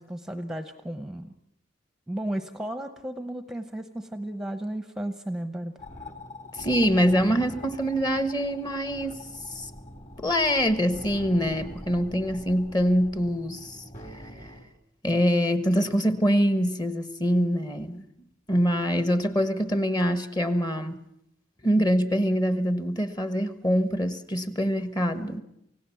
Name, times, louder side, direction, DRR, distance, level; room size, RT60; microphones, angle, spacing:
voice 1, 0.0-1.3 2.1-5.7, right 1 dB, ahead, 8 dB, 0.9 m, -34 dB
sound 1, 5.8-14.6, left 1 dB, 35° left, 3.4 m, -43 dB
voice 2, 6.6-9.3 9.5-9.7 10.2-13.8 15.0-18.0 18.5-21.0 21.6-25.4, equal, 20° left, 10 dB, 1.3 m, -24 dB
28.5 x 17.0 x 7.2 m, 0.80 s
head